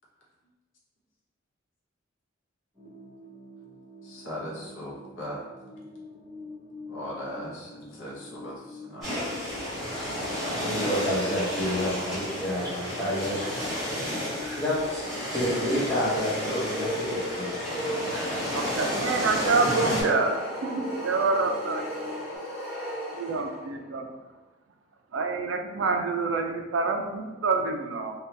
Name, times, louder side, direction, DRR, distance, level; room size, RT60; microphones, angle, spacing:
sound 1, 2.7-22.4, left 1 dB, 20° right, 1.2 m, -47 dB
voice 1, 4.0-5.4 6.9-9.1, equal, 80° left, -5 dB, 0.8 m, -38 dB
sound 2, 9.0-20.0, left 1 dB, ahead, 1.5 m, -32 dB
voice 2, 10.6-13.5 14.4-18.2, equal, 15° left, -9 dB, 1.0 m, -29 dB
sound 3, 14.7-23.8, equal, 55° left, 1.1 m, -36 dB
voice 3, 18.5-21.8 23.1-24.1 25.1-28.1, right 4 dB, 75° right, 4 dB, 0.4 m, -27 dB
2.8 x 2.3 x 3.2 m, 1.2 s
head